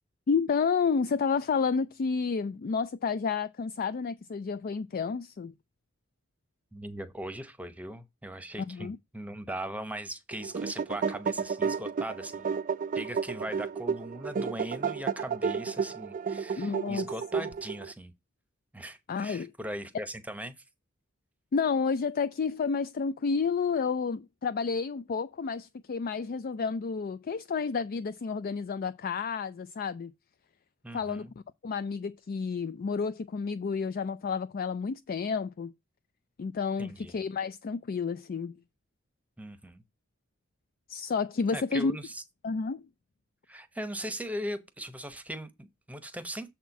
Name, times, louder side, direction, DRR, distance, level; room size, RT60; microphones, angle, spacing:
voice 1, 0.3-5.5 8.7-9.0 16.6-17.1 17.4-17.5 19.1-19.5 21.5-30.1 30.9-31.3 31.6-35.7 36.4-38.6 40.9-42.0 42.4-42.8, left 5 dB, 45° left, 0.4 m, -30 dB
voice 2, 6.7-12.6 12.9-18.1 18.7-20.6 30.8-31.3 36.8-37.2 39.4-39.8 41.5-42.2 43.5-46.5, right 1 dB, 5° right, 0.8 m, -39 dB
sound 1, 10.3-17.9, right 6 dB, 40° right, 0.4 m, -32 dB
7.2 x 4.3 x 5.8 m
head